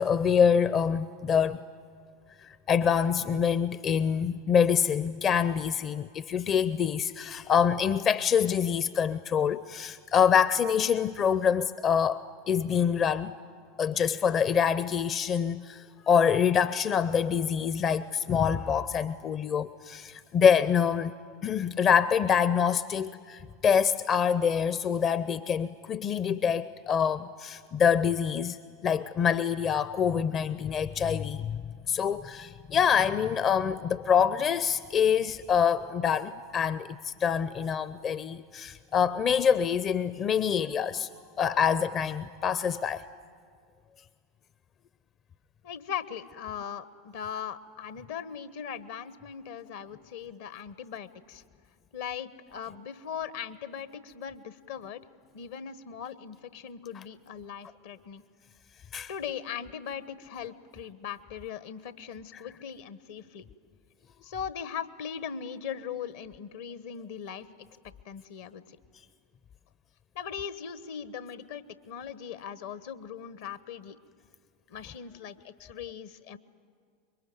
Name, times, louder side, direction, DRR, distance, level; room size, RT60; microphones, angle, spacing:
voice 1, 0.0-1.6 2.4-13.3 13.8-21.1 21.4-31.6 31.9-41.1 41.4-43.1 56.9-57.0 58.9-59.1, left 7 dB, 35° left, 15 dB, 0.6 m, -26 dB
voice 2, 45.6-51.4 51.9-55.0 55.3-58.2 59.1-63.5 64.2-67.7 68.0-68.8 70.1-74.0 74.7-76.4, left 8 dB, 60° left, 15 dB, 1.1 m, -39 dB
25.5 x 22.5 x 9.5 m, 2.1 s
figure-of-eight pair, 80°, 0 cm